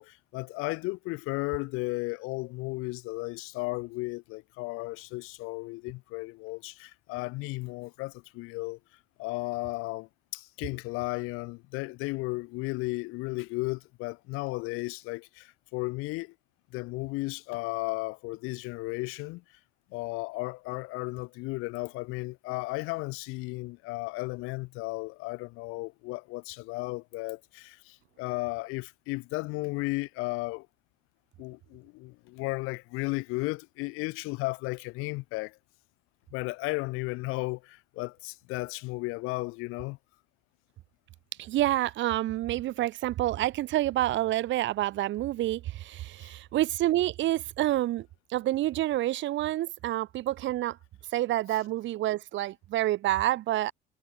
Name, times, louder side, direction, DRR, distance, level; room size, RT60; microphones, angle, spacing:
voice 1, 0.0-8.8 9.2-16.3 16.7-19.4 19.9-30.7 31.4-35.6 36.3-40.0 46.2-46.3, left 24 dB, 80° left, 6.8 m, -34 dB
voice 2, 41.4-50.8 51.1-53.7, right 15 dB, 60° right, 3.4 m, -28 dB
cardioid pair, 110°, 21 cm